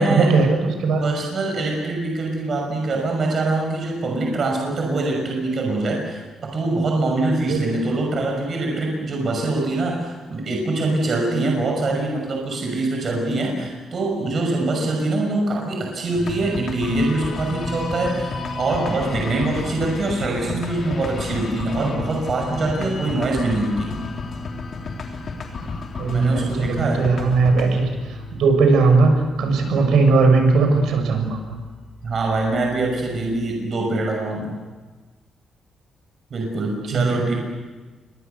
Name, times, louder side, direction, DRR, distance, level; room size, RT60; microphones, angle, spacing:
voice 1, 0.0-1.1 7.5-7.7 26.0-29.1 29.4-31.4 36.9-37.3, right 4 dB, 90° right, 5 dB, 6.1 m, -18 dB
voice 2, 1.0-23.9 26.1-27.0 32.0-34.6 36.3-37.3, right 2 dB, 40° right, 0 dB, 6.0 m, -24 dB
sound 1, 16.2-33.3, left 3 dB, 45° left, 3.6 m, -32 dB
29.0 x 24.0 x 6.9 m, 1.3 s
cardioid pair, 155°, 0 cm